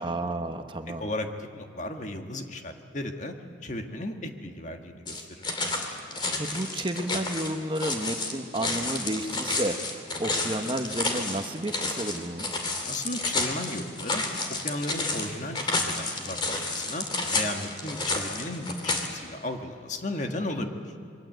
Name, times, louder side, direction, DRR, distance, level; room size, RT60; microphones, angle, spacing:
voice 1, 0.0-1.1 6.4-12.5, right 1 dB, 25° right, 6 dB, 1.1 m, -31 dB
voice 2, 1.0-3.3 3.6-5.5 12.9-14.2 14.6-17.1 17.3-20.9, left 1 dB, 40° left, 5 dB, 1.7 m, -35 dB
sound 1, 5.1-19.1, left 3 dB, 25° left, 2.7 m, -30 dB
27.5 x 23.0 x 7.9 m, 2.5 s
head